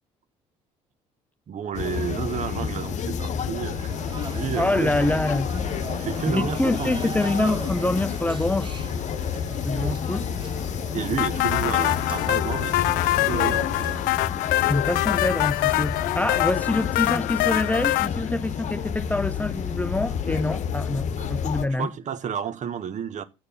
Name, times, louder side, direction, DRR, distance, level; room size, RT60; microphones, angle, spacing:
voice 1, 1.5-4.9 5.9-7.1 9.8-10.0 10.9-14.0 21.2-21.3 21.8-23.2, right 8 dB, 55° right, 1.4 m, -31 dB
sound 1, 1.7-21.7, left 7 dB, 50° left, 1.0 m, -30 dB
workers cuban alley +bandsaw, 3.9-14.1, right 5 dB, 30° right, 1.2 m, -41 dB
voice 2, 4.5-5.5 6.3-8.9 9.5-10.2 14.7-21.9, left 2 dB, 10° left, 0.6 m, -26 dB
sound 2, 11.2-18.1, left 18 dB, 75° left, 0.5 m, -24 dB
7.8 x 6.7 x 7.0 m
supercardioid pair, 70°, 15 cm